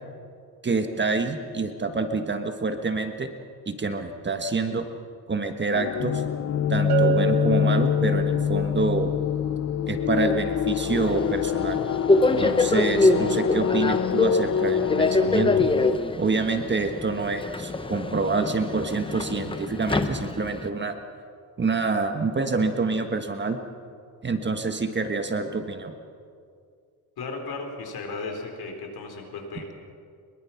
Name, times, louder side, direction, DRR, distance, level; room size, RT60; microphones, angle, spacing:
voice 1, 0.6-3.3 3.7-4.9 5.3-6.2 6.7-9.1 9.9-11.8 12.4-15.7 16.2-20.9 21.6-23.6 24.2-25.9, right 3 dB, 25° right, 6 dB, 1.5 m, -27 dB
sound 1, 5.7-16.0, left 9 dB, 40° left, 0.6 m, -25 dB
Bell, 6.9-8.5, right 14 dB, 75° right, 2.4 m, -28 dB
Subway metro underground, 10.9-20.7, left 2 dB, 15° left, 1.0 m, -25 dB
voice 2, 27.2-29.7, left 3 dB, 65° left, 4 dB, 4.3 m, -35 dB
23.5 x 22.5 x 5.9 m, 2.3 s
cardioid pair, 115°, 40 cm